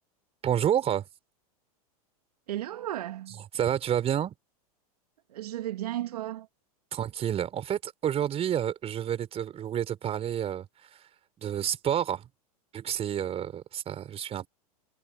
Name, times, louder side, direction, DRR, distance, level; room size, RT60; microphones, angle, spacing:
voice 1, 0.4-1.0 3.5-4.3 6.9-10.7 11.4-12.3 12.7-14.5, right 10 dB, 30° right, 4.7 m, -29 dB
voice 2, 2.5-3.4 5.3-6.5, right 13 dB, 80° right, 2.1 m, -34 dB
hypercardioid pair, 110°, 20 cm